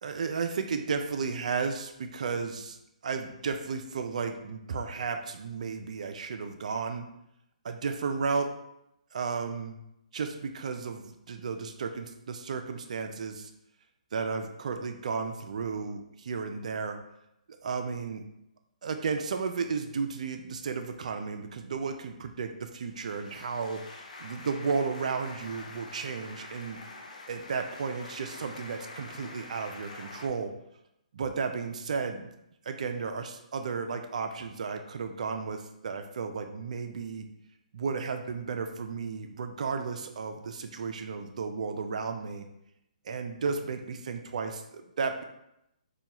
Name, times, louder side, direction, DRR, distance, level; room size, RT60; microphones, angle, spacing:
voice 1, 0.0-2.8 3.0-7.1 7.6-8.5 9.1-9.8 10.1-13.5 14.1-17.0 17.6-18.2 18.8-26.8 27.3-30.5 31.1-32.3 32.7-37.3 37.7-42.4 43.0-45.2, right 5 dB, 60° right, 6 dB, 0.4 m, -33 dB
sound 1, 22.8-30.3, left 3 dB, 65° left, 0.6 m, -46 dB
4.2 x 2.3 x 2.9 m, 0.83 s
hypercardioid pair, 155°, 4 cm